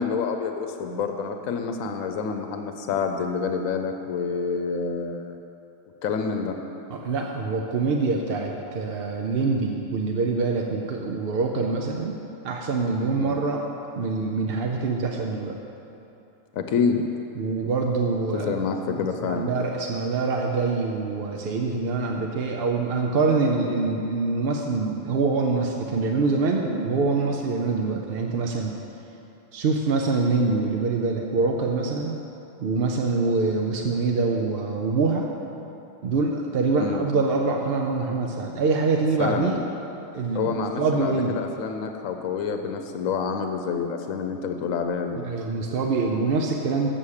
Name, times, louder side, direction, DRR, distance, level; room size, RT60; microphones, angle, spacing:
voice 1, 0.0-5.3 6.0-6.6 13.2-13.4 14.2-14.3 16.5-17.0 18.3-19.5 36.8-37.0 39.2-39.6 40.3-45.2, left 5 dB, 90° left, 5 dB, 1.0 m, -28 dB
voice 2, 6.9-12.2 12.4-13.6 14.0-15.6 17.4-18.6 18.9-28.7 29.5-32.2 32.6-35.3 36.0-39.6 40.1-41.4 45.2-46.9, right 4 dB, 55° right, 1 dB, 0.7 m, -25 dB
7.6 x 7.1 x 6.5 m, 2.9 s
omnidirectional pair, 1.4 m